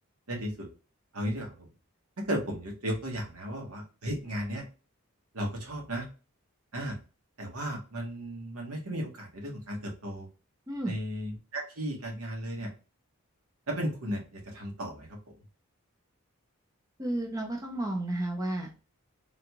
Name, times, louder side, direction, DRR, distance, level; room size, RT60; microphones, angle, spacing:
voice 1, 0.3-0.7 1.1-1.7 2.2-4.6 5.3-6.1 6.7-7.0 7.4-10.3 10.8-12.7 13.7-15.2, equal, 85° right, 0 dB, 1.3 m, -35 dB
voice 2, 17.0-18.8, right 1 dB, 15° right, 1 dB, 0.5 m, -32 dB
3.7 x 2.3 x 2.9 m, 0.33 s
head